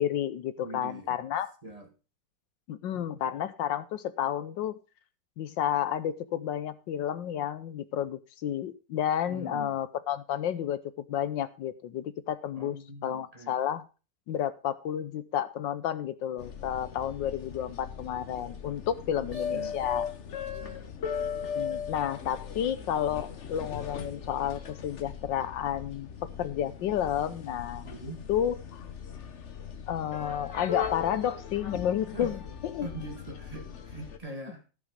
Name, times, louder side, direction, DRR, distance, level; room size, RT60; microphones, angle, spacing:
voice 1, 0.0-1.5 2.7-4.8 5.4-10.8 11.1-12.8 13.0-13.8 14.3-20.1 21.5-26.1 26.4-27.9 28.3-28.9 29.9-32.4 32.6-32.9, left 10 dB, 75° left, 13 dB, 1.4 m, -31 dB
voice 2, 0.6-1.2 1.6-1.9 2.9-3.2 9.3-9.8 12.5-13.6 17.6-17.7 19.1-19.9 20.4-21.0 27.8-28.2 32.1-32.4 32.8-34.7, right 1 dB, 20° right, 3 dB, 2.1 m, -43 dB
sound 1, 16.4-34.2, left 7 dB, 45° left, 1.2 m, -39 dB
14.5 x 6.1 x 5.1 m, 0.32 s
omnidirectional pair, 2.1 m